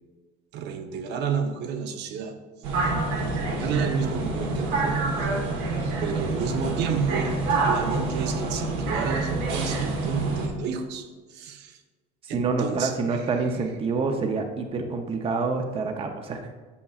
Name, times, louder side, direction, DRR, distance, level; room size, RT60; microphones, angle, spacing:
voice 1, 0.5-2.4 3.2-5.3 6.0-7.4 7.6-11.8 12.3-13.2, right 6 dB, 65° right, 6 dB, 0.8 m, -30 dB
sound 1, 2.6-10.5, right 3 dB, 85° right, 1.3 m, -27 dB
voice 2, 12.3-16.5, right 4 dB, 30° right, 5 dB, 0.6 m, -27 dB
8.4 x 5.4 x 2.4 m, 1.3 s
cardioid pair, 120°, 19 cm